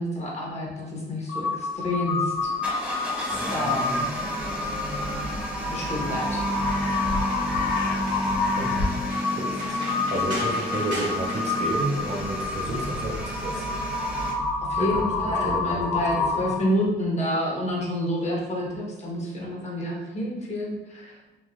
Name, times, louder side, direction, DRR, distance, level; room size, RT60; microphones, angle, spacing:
voice 1, 0.0-2.5 3.5-4.1 5.7-6.4 14.7-21.4, equal, 35° left, -3 dB, 0.9 m, -29 dB
Crow, 1.3-16.8, left 3 dB, 85° left, 0.5 m, -28 dB
sound 1, 2.4-12.4, right 1 dB, 65° right, 1.3 m, -41 dB
sound 2, 2.6-14.3, equal, 5° right, 0.8 m, -32 dB
voice 2, 8.6-8.9 9.3-13.8 14.8-16.4, right 2 dB, 35° right, 0 dB, 0.5 m, -32 dB
3.1 x 2.4 x 2.4 m, 1.1 s
cardioid pair, 90°, 20 cm